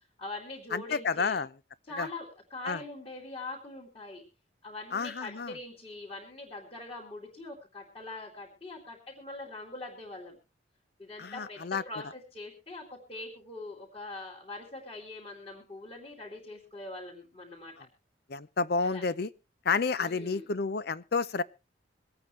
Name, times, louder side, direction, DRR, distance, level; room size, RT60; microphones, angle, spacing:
voice 1, 0.2-1.3 1.9-4.2 4.6-10.4 11.0-17.9 18.8-19.0 20.0-20.5, left 2 dB, 30° left, 3.2 m, -43 dB
voice 2, 0.7-1.5 2.0-2.1 2.6-2.8 4.9-5.5 11.2-11.8 17.8-17.9 18.3-19.3 19.6-21.4, left 4 dB, 55° left, 0.6 m, -30 dB
24.5 x 8.9 x 3.2 m
head